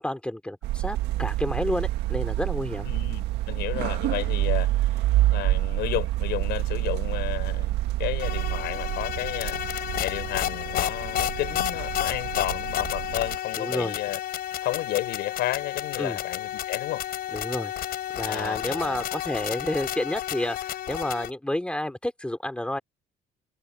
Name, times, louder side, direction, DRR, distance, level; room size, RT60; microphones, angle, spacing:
voice 1, 0.0-2.9 13.6-14.0 16.0-16.2 17.3-17.7 18.2-22.8, left 1 dB, 5° left, 3.2 m, -30 dB
sound 1, 0.6-13.4, right 15 dB, 85° right, 1.7 m, -28 dB
voice 2, 2.8-4.7 5.3-9.6 9.9-14.2 14.6-17.0 18.3-19.0, left 16 dB, 80° left, 5.2 m, -32 dB
sound 2, 8.2-21.3, left 12 dB, 65° left, 4.0 m, -31 dB
cardioid pair, 110°, 17 cm